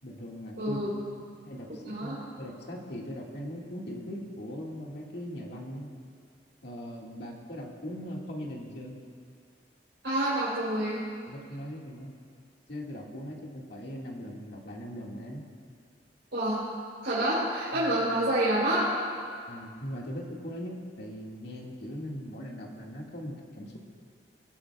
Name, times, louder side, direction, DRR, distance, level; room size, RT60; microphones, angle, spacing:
voice 1, 0.0-0.8 1.4-6.0 6.6-9.0 11.3-12.1 12.7-15.5 17.7-17.9 19.5-23.8, equal, 65° left, -2 dB, 2.0 m, -40 dB
voice 2, 0.6-0.9 1.9-2.2 10.0-11.0 16.3-16.6 17.0-18.9, right 1 dB, 85° right, -11 dB, 3.8 m, -27 dB
22.5 x 13.0 x 2.4 m, 2.2 s
head